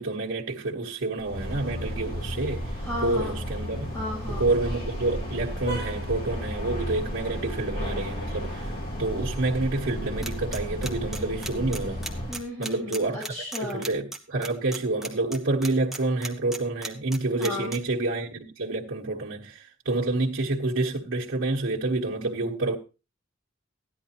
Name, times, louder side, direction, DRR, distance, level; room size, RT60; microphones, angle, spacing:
voice 1, 0.0-2.7 3.0-3.9 4.3-8.7 9.0-12.0 12.6-13.2 13.6-22.8, right 2 dB, 85° right, 1.4 m, -28 dB
sound 1, 1.2-12.4, equal, 50° left, 3.7 m, -33 dB
voice 2, 2.8-3.4 3.9-4.5 12.3-13.9 17.4-17.7, left 1 dB, 15° left, 7.3 m, -34 dB
sound 2, 10.2-17.8, right 2 dB, ahead, 1.3 m, -35 dB
15.0 x 10.5 x 2.9 m
head